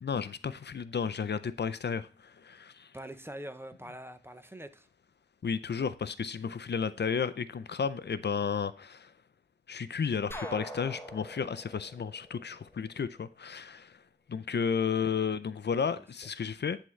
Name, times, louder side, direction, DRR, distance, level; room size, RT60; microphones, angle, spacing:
voice 1, 0.0-2.9 5.4-9.1 9.7-13.9 14.3-16.8, left 6 dB, 70° left, 0.5 m, -33 dB
voice 2, 2.9-4.9 15.0-15.1, right 1 dB, 15° right, 0.7 m, -44 dB
sound 1, 10.3-13.1, equal, 10° left, 1.2 m, -43 dB
11.0 x 3.7 x 3.2 m
wide cardioid pair, 45°, 18 cm